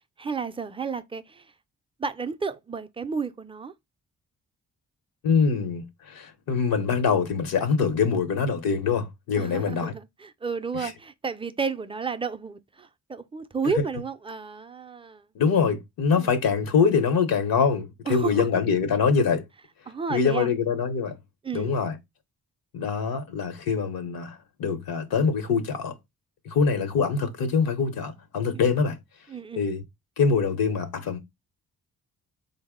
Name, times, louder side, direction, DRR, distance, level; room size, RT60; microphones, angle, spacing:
voice 1, 0.2-1.4 2.0-3.7 9.4-15.2 16.1-16.3 18.1-18.5 19.9-20.5 21.4-21.7 28.5-28.6 29.3-29.7, right 5 dB, 15° right, 0.4 m, -32 dB
voice 2, 5.2-9.9 10.7-10.9 15.3-19.4 20.1-21.1 21.5-22.0 22.7-25.9 26.5-29.0 29.6-29.8 30.2-31.2, left 5 dB, 85° left, 0.8 m, -24 dB
4.0 x 2.0 x 3.5 m
cardioid pair, 75°, 34 cm